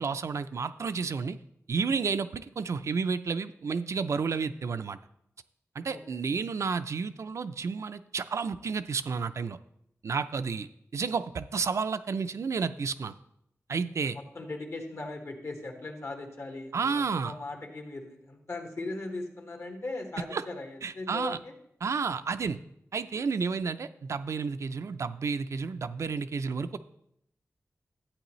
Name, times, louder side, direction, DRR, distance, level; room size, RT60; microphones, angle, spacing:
voice 1, 0.0-1.4 1.7-5.0 5.8-9.6 10.0-13.1 13.7-14.2 16.7-17.3 20.3-20.4 20.8-21.4 21.8-22.6 22.9-26.8, right 5 dB, 70° right, 11 dB, 0.4 m, -31 dB
voice 2, 5.8-6.2 14.1-21.5, left 2 dB, 60° left, 3 dB, 1.5 m, -39 dB
11.5 x 8.8 x 3.1 m, 0.75 s
wide cardioid pair, 105°, 5 cm